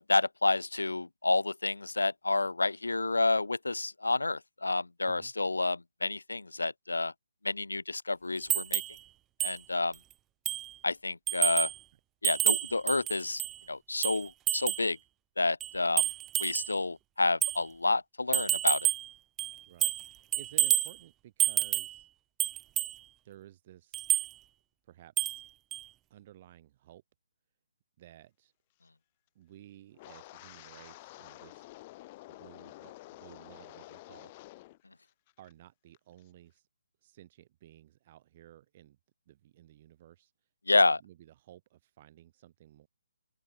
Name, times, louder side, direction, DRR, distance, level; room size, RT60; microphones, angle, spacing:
voice 1, 0.0-7.1 7.4-8.8 9.4-9.9 10.8-11.7 12.2-13.4 13.7-15.0 15.4-16.1 16.4-18.8 40.7-41.0, left 3 dB, 75° left, 0.5 m, -29 dB
sound 1, 8.5-9.0 9.4-9.6 9.9-10.0 10.5-10.7 11.3-11.8 12.2-13.6 14.0-14.9 15.6-16.8 17.4-17.6 18.3-19.1 19.4-20.1 20.3-20.9 21.4-22.0 22.4-23.0 23.9-24.3 25.2-25.4 25.7-25.8, right 14 dB, 15° right, 0.5 m, -29 dB
voice 2, 19.7-22.1 23.2-24.0 24.9-25.4 26.1-27.0 28.0-28.5 29.4-31.7 32.3-34.3 35.4-36.7 37.0-39.0 39.3-40.3 40.8-42.9, right 13 dB, 35° right, 5.5 m, -55 dB
Wind, 29.9-34.8 35.1-35.5 35.9-36.2, left 19 dB, 30° left, 6.8 m, -50 dB
open air
figure-of-eight pair, 140°, 0 cm